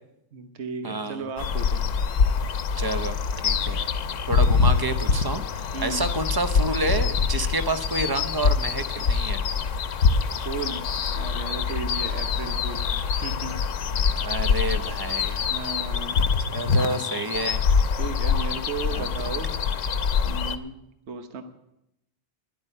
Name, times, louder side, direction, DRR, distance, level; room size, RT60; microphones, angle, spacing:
voice 1, 0.3-1.9 5.7-6.0 10.4-10.8 11.1-12.9 13.2-13.6 15.5-16.3 18.0-19.5 20.2-20.8 21.1-21.4, right 5 dB, 60° right, 7 dB, 1.3 m, -35 dB
voice 2, 0.8-1.3 2.8-3.9 4.3-9.4 14.2-15.5 16.5-17.6 18.9-19.0, right 2 dB, 25° right, 9 dB, 0.6 m, -29 dB
sound 1, 1.4-20.6, left 5 dB, 80° left, 1.1 m, -25 dB
11.0 x 8.7 x 10.0 m, 0.85 s
omnidirectional pair, 1.3 m